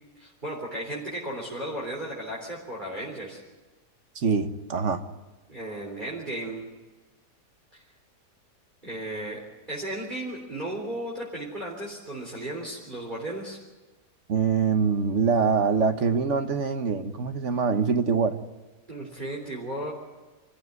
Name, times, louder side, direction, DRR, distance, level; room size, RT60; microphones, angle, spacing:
voice 1, 0.2-3.4 5.5-6.7 7.7-7.8 8.8-13.6 18.9-19.9, right 1 dB, 30° right, -3 dB, 3.8 m, -35 dB
voice 2, 4.1-5.0 14.3-18.4, right 5 dB, 50° right, 9 dB, 1.4 m, -24 dB
25.5 x 15.0 x 9.5 m, 1.2 s
omnidirectional pair, 1.7 m